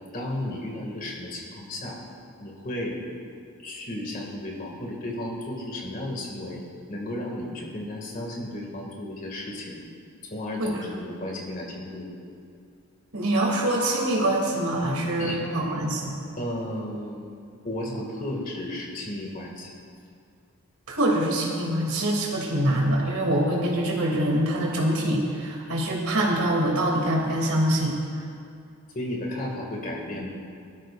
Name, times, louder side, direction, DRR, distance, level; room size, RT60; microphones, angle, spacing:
voice 1, 0.1-2.0 2.4-3.0 3.6-6.6 6.9-9.8 10.3-12.1 14.8-15.4 16.4-19.7 28.9-30.3, left 1 dB, 40° left, -1 dB, 2.1 m, -34 dB
voice 2, 13.1-16.1 20.9-28.0, right 1 dB, 90° right, -2 dB, 2.8 m, -24 dB
18.5 x 13.0 x 2.5 m, 2.3 s
head